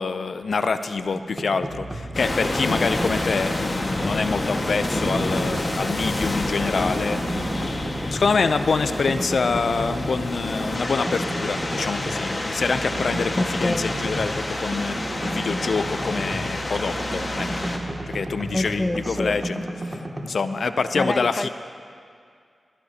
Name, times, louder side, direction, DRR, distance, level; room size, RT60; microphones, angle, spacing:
voice 1, 0.0-7.4 8.1-17.5 18.1-19.6 20.2-21.5, left 4 dB, 75° left, 10 dB, 0.6 m, -26 dB
sound 1, 1.1-2.1 2.4-4.2 4.6-6.3 6.6-8.4 8.6-10.2 10.6-12.2 12.6-16.6 16.9-20.2, right 1 dB, 30° right, 2.3 m, -33 dB
sound 2, 1.6-19.4, right 3 dB, 90° right, 1.4 m, -41 dB
sound 3, 2.1-17.8, left 2 dB, 45° left, 1.7 m, -28 dB
voice 2, 13.4-13.9 18.5-19.4 21.0-21.5, left 1 dB, 25° left, 14 dB, 0.4 m, -26 dB
20.0 x 16.5 x 2.9 m, 2.2 s
cardioid pair, 40°, 0 cm